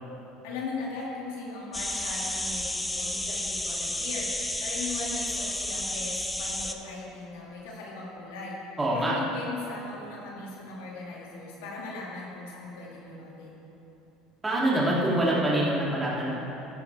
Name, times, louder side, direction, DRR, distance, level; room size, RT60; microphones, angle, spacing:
voice 1, 0.4-8.6 8.9-13.5, left 3 dB, 90° left, -4 dB, 2.4 m, -38 dB
sound 1, 1.7-6.7, left 1 dB, 10° left, 0.7 m, -31 dB
voice 2, 8.8-9.1 14.4-16.3, right 1 dB, 15° right, -6 dB, 2.9 m, -25 dB
13.0 x 11.5 x 3.5 m, 3.0 s
supercardioid pair, 110°, 0 cm